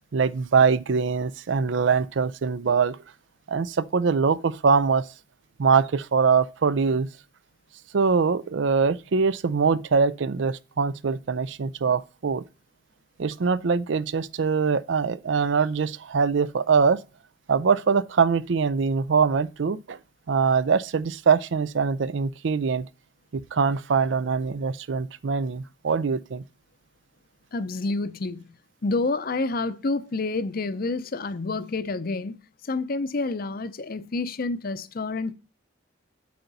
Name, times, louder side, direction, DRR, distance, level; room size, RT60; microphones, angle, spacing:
voice 1, 0.1-3.0 3.5-5.1 5.6-7.1 7.9-12.4 13.2-17.0 17.5-20.0 20.3-22.9 23.3-26.4, right 5 dB, 70° right, 0.5 m, -23 dB
voice 2, 27.5-28.5 28.8-32.4 32.6-35.3, left 3 dB, 50° left, 0.6 m, -28 dB
8.5 x 7.8 x 4.0 m
head